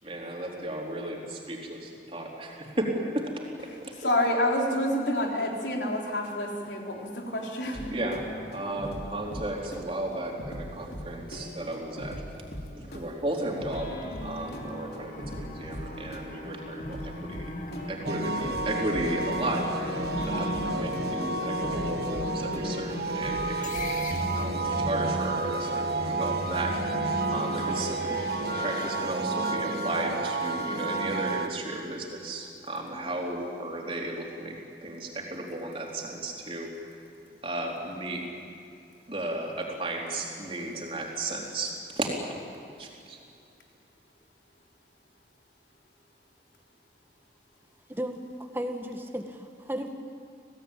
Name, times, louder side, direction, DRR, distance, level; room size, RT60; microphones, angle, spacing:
voice 1, 0.0-3.5 3.8-3.9 7.9-12.2 12.7-17.5 17.9-23.9 24.3-28.2 28.6-36.7 37.4-38.3 39.1-42.1 42.8-43.2, right 1 dB, 30° right, -1 dB, 4.0 m, -34 dB
voice 2, 3.7-7.9, left 1 dB, 85° left, 0 dB, 4.1 m, -28 dB
sound 1, 7.7-24.9, equal, 65° left, 3.1 m, -41 dB
sound 2, 14.4-28.9, left 1 dB, 45° left, 2.1 m, -38 dB
sound 3, 18.0-31.5, right 3 dB, 60° right, 1.6 m, -31 dB
voice 3, 47.9-48.2 48.5-49.9, equal, 15° right, 4 dB, 1.7 m, -34 dB
27.5 x 18.0 x 9.1 m, 2.5 s
head